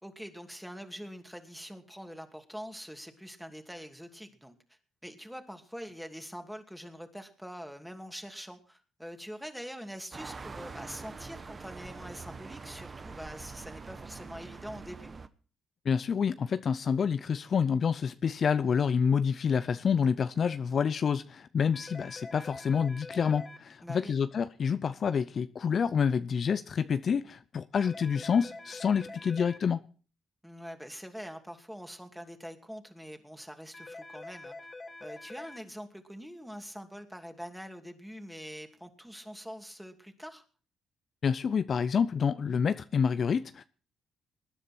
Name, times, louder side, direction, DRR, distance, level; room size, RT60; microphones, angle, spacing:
voice 1, 0.0-4.5 5.0-15.1 23.8-24.2 30.4-34.6 35.0-40.4, equal, ahead, 2.6 m, -44 dB
sound 1, 10.1-15.3, right 4 dB, 35° right, 1.1 m, -44 dB
voice 2, 15.9-29.8 41.2-43.6, left 6 dB, 50° left, 0.6 m, -28 dB
sound 2, 21.7-23.6 27.7-29.6 33.7-35.6, left 2 dB, 30° left, 2.1 m, -45 dB
20.0 x 10.0 x 4.4 m
supercardioid pair, 60°, 0 cm